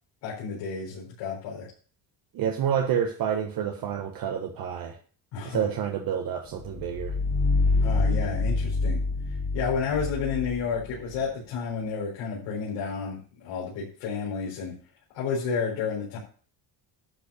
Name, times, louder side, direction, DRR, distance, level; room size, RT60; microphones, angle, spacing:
voice 1, 0.2-1.7 5.3-5.7 7.8-9.0 9.5-14.7 15.1-16.2, left 5 dB, 85° left, 4.5 m, -31 dB
voice 2, 2.3-5.0 5.4-7.2, right 8 dB, 50° right, 1.4 m, -28 dB
sound 1, 6.6-11.2, left 3 dB, 25° left, 2.7 m, -26 dB
11.5 x 5.3 x 6.8 m
cardioid pair, 165°, 42 cm